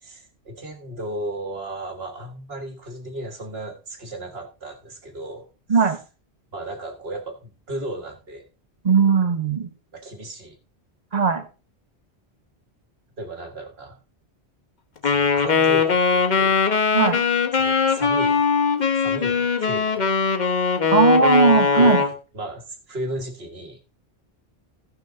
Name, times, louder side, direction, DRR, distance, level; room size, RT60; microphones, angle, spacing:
voice 1, 0.0-5.5 5.8-5.9 6.5-8.5 9.9-10.6 13.2-14.0 15.0-16.6 17.6-18.4 19.0-20.0 21.8-22.1 22.3-23.8, right 1 dB, 65° right, 4 dB, 1.9 m, -35 dB
voice 2, 8.8-9.7 11.1-11.4 16.9-17.2 20.9-22.0, right 4 dB, 40° right, 9 dB, 1.2 m, -18 dB
Wind instrument woodwind instrument, 15.0-22.2, left 5 dB, 45° left, 1.1 m, -20 dB
14.5 x 5.8 x 3.9 m, 0.32 s
omnidirectional pair, 1.1 m